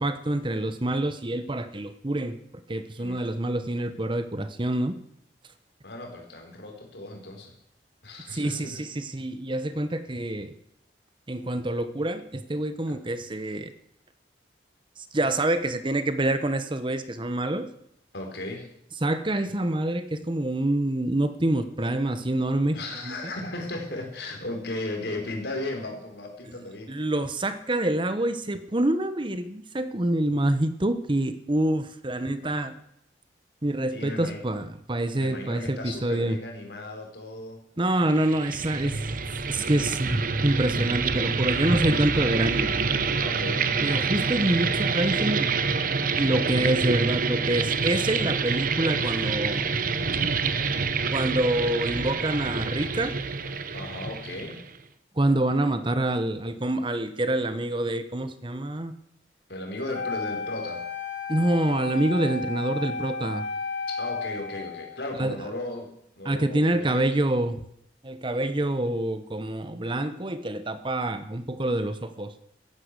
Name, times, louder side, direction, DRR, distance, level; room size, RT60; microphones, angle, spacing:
voice 1, 0.0-2.4 2.7-4.9 8.3-10.5 11.3-13.7 15.1-17.7 19.0-22.8 23.0-23.2 26.9-32.8 33.6-36.4 37.8-39.0 39.5-42.7 43.8-45.5 46.2-49.6 51.1-53.2 55.2-58.9 61.3-63.4 65.2-65.4 66.2-67.6 68.0-72.3, right 1 dB, 30° right, 11 dB, 1.0 m, -26 dB
voice 2, 5.8-7.5 8.0-8.8 18.1-18.7 22.7-26.9 33.9-34.4 35.2-37.6 43.2-43.7 53.7-54.6 59.5-60.8 63.9-65.9 66.2-67.2, left 2 dB, 65° left, 2 dB, 4.4 m, -36 dB
sound 1, 38.1-54.8, right 5 dB, 50° right, 1.0 m, -27 dB
Wind instrument woodwind instrument, 59.9-65.0, left 4 dB, 85° left, 2.0 m, -33 dB
14.5 x 11.5 x 8.2 m, 0.74 s
head